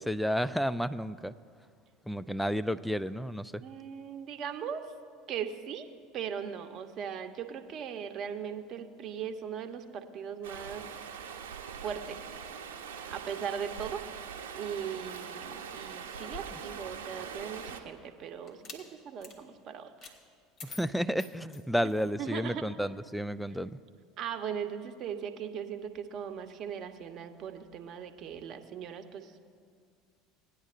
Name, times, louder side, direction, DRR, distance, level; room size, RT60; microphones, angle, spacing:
voice 1, 0.0-1.3 2.1-3.6 20.6-23.8, equal, ahead, 14 dB, 0.4 m, -31 dB
voice 2, 3.6-4.9 5.3-5.9 6.1-10.8 11.8-12.2 13.1-14.0 14.5-20.1 21.8-21.9 22.2-22.7 24.2-29.4, right 8 dB, 50° right, 8 dB, 0.8 m, -39 dB
Stream, 10.4-17.8, right 7 dB, 80° right, 0.8 m, -42 dB
sound 1, 16.1-17.7 18.5-18.8 19.2-19.4 20.0-20.2 20.6-22.1, left 3 dB, 50° left, 1.6 m, -48 dB
18.0 x 10.0 x 2.5 m, 2.1 s
hypercardioid pair, 75°, 0 cm